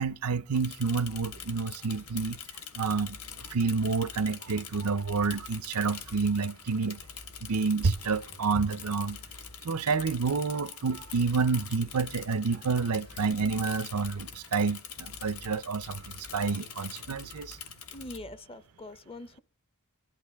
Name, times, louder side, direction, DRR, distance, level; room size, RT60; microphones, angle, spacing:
voice 1, 0.0-2.4 2.7-7.0 7.4-9.2 9.6-17.6, right 4 dB, 75° right, 0.6 m, -29 dB
Bicycle / Mechanisms, 0.5-18.2, left 8 dB, 75° left, 1.3 m, -45 dB
sound 1, 1.0-2.5 3.0-5.7 6.0-6.5 7.0-10.5 11.0-13.7 14.0-14.5 15.0-17.7 18.0-18.5, left 1 dB, 55° left, 2.5 m, -52 dB
voice 2, 17.9-19.4, left 1 dB, 25° left, 0.6 m, -43 dB
23.0 x 12.0 x 3.5 m
head